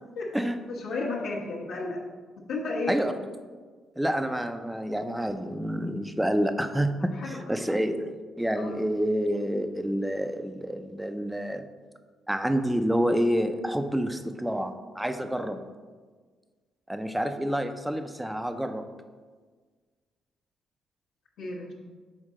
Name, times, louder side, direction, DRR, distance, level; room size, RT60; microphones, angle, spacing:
voice 1, 0.7-2.0 2.5-3.1 7.1-7.6 8.6-8.7 21.4-21.7, left 3 dB, 80° left, -5 dB, 1.1 m, -33 dB
voice 2, 4.0-11.7 12.3-15.6 16.9-18.8, equal, 5° right, 8 dB, 0.4 m, -28 dB
6.4 x 4.1 x 3.6 m, 1.5 s
cardioid pair, 90°, 0 cm